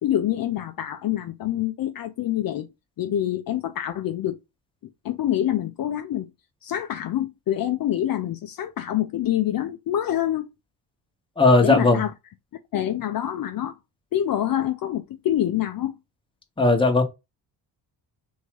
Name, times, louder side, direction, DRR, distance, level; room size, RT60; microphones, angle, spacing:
voice 1, 0.0-2.7 3.0-4.4 5.0-6.3 6.6-10.5 11.6-12.1 12.7-13.7 14.1-16.0, left 12 dB, 55° left, 0.6 m, -26 dB
voice 2, 11.4-12.0 16.6-17.0, left 3 dB, 10° left, 1.1 m, -17 dB
3.6 x 2.7 x 4.6 m
cardioid pair, 100°, 43 cm